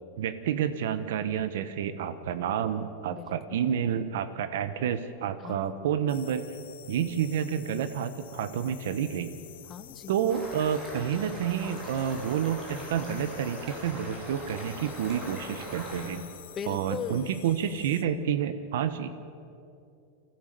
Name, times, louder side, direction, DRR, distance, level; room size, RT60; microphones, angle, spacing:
voice 1, 0.2-6.4 6.9-9.3 10.1-16.2 16.7-19.1, right 8 dB, 70° right, 11 dB, 1.2 m, -29 dB
voice 2, 3.1-3.6 5.4-5.8 9.7-10.3 16.1-17.4, left 7 dB, 20° left, 11 dB, 0.6 m, -40 dB
sound 1, 6.1-18.0, left 11 dB, 85° left, 1.4 m, -50 dB
sound 2, 10.3-16.1, equal, 15° right, 4.5 m, -41 dB
25.5 x 16.5 x 7.7 m, 2.6 s
supercardioid pair, 175°, 0 cm